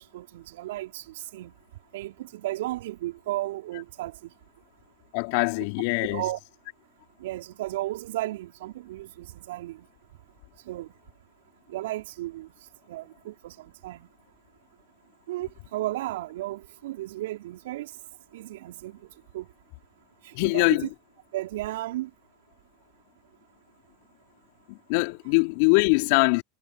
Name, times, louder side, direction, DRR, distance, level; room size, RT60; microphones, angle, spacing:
voice 1, 0.0-1.5 1.9-4.3 5.6-5.7 6.1-6.4 7.2-9.9 10.7-10.9 11.7-12.5 12.9-14.1 15.3-18.0 18.3-19.0 19.3-19.5 20.2-20.9 21.3-22.1, right 16 dB, 70° right, 4.5 m, -34 dB
voice 2, 5.1-6.2 20.3-20.9 24.7-26.4, left 32 dB, 60° left, 4.3 m, -23 dB
hypercardioid pair, 90°, 0 cm